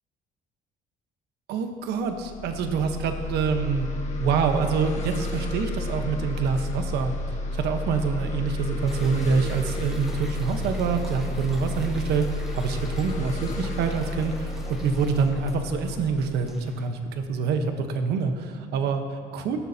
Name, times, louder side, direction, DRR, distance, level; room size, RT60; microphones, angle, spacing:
voice 1, 1.5-3.9 4.2-7.2 7.5-19.6, right 5 dB, 80° right, 6 dB, 1.2 m, -26 dB
sound 1, 2.0-17.4, left 2 dB, 45° left, 1.5 m, -32 dB
sound 2, 8.9-16.9, equal, ahead, 1.2 m, -46 dB
17.5 x 12.0 x 2.9 m, 2.4 s
cardioid pair, 110°, 17 cm